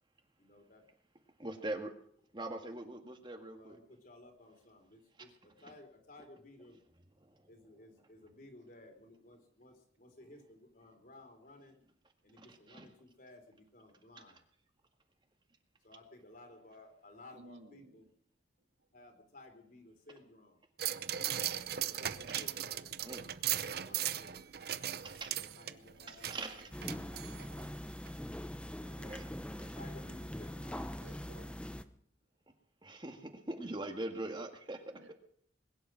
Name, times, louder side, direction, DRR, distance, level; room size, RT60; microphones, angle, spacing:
voice 1, 0.4-0.8 3.5-6.8 7.5-11.8 12.2-14.4 15.8-18.1 18.9-20.6 21.8-23.0 23.5-24.4 25.3-27.1 28.8-29.2 29.7-31.0, left 2 dB, 50° left, 4 dB, 3.9 m, -57 dB
voice 2, 1.4-1.9 2.3-3.8 7.2-7.5 12.4-12.9 23.0-23.2 25.0-25.3 26.1-26.7 29.0-29.3 29.6-29.8 32.8-34.8, right 2 dB, 25° right, 5 dB, 1.9 m, -42 dB
voice 3, 17.4-18.0 18.8-18.9 31.0-31.5 34.9-35.1, right 2 dB, 85° right, 6 dB, 2.1 m, -56 dB
sound 1, 20.8-27.7 28.1-28.2, right 11 dB, 55° right, 0.7 m, -38 dB
sound 2, 26.7-31.8, equal, 5° left, 0.8 m, -43 dB
21.5 x 10.5 x 6.3 m, 0.62 s
head